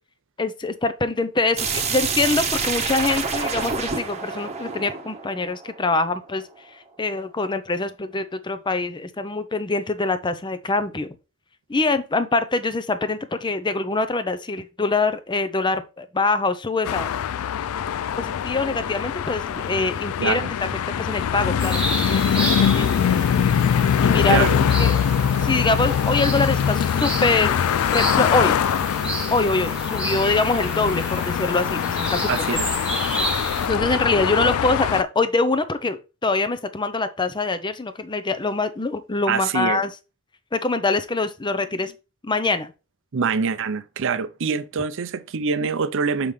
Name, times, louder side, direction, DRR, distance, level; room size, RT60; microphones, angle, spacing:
voice 1, 0.4-11.2 11.7-17.1 18.2-20.4 21.0-23.7 24.0-24.5 24.8-24.9 25.4-27.6 27.9-28.6 29.3-32.3 33.6-36.0 36.2-39.9 40.5-41.9 42.2-42.7, left 3 dB, 20° left, 0.6 m, -24 dB
sound 1, 1.6-6.3, right 5 dB, 30° right, 1.0 m, -27 dB
sound 2, 16.8-35.0, left 8 dB, 75° left, 0.3 m, -23 dB
sound 3, 21.6-33.7, right 2 dB, 5° right, 1.6 m, -31 dB
voice 2, 24.3-24.6 32.3-32.7 39.3-39.8 43.1-46.3, right 5 dB, 65° right, 0.6 m, -24 dB
6.8 x 5.4 x 3.2 m
head